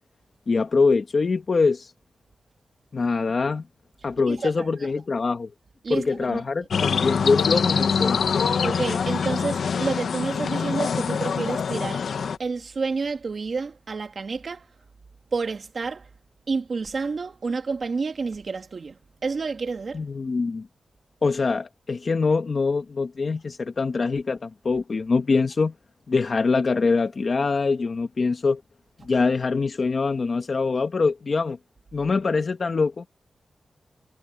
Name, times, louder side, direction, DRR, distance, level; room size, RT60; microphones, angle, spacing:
voice 1, 0.5-1.9 2.9-3.6 4.0-5.5 5.9-8.2 19.9-20.7 21.2-25.7 26.1-28.6 29.0-31.6 31.9-33.0, left 4 dB, 50° left, 1.3 m, -24 dB
voice 2, 4.3-4.8 5.8-6.4 8.6-12.0 12.4-14.7 15.3-16.1 16.5-20.0, right 4 dB, 50° right, 2.2 m, -29 dB
sound 1, 6.7-12.4, left 6 dB, 90° left, 0.8 m, -24 dB
wide cardioid pair, 135°, 0 cm